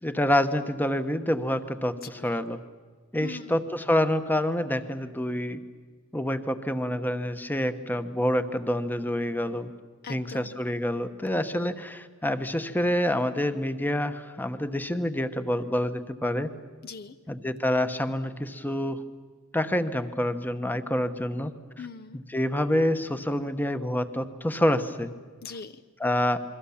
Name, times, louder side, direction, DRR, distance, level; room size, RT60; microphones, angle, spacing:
voice 1, 0.0-2.6 3.1-5.6 6.1-9.7 10.1-16.5 17.3-19.0 19.5-21.5 22.1-25.1 26.0-26.4, left 1 dB, 10° left, 10 dB, 1.1 m, -27 dB
voice 2, 2.0-2.4 3.2-3.6 10.0-10.6 16.8-17.1 21.8-22.2 25.4-25.8, left 5 dB, 45° left, 11 dB, 0.7 m, -41 dB
29.0 x 22.5 x 7.2 m, 1.5 s
head